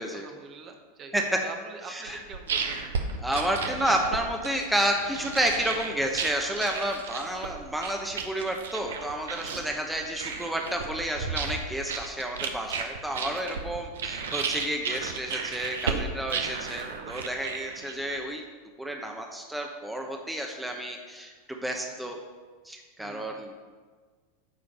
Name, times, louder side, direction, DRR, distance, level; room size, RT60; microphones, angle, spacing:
voice 1, 0.1-1.2 1.4-2.9 9.4-9.9 13.0-13.7 21.9-22.0 23.0-23.4, right 4 dB, 35° right, 4 dB, 1.1 m, -46 dB
voice 2, 1.9-2.2 3.2-18.4 18.8-22.2 22.6-23.6, right 1 dB, 5° right, 2 dB, 0.9 m, -30 dB
sound 1, 2.1-18.2, right 5 dB, 75° right, 0.8 m, -34 dB
9.2 x 5.0 x 5.4 m, 1.5 s
hypercardioid pair, 95°, 0 cm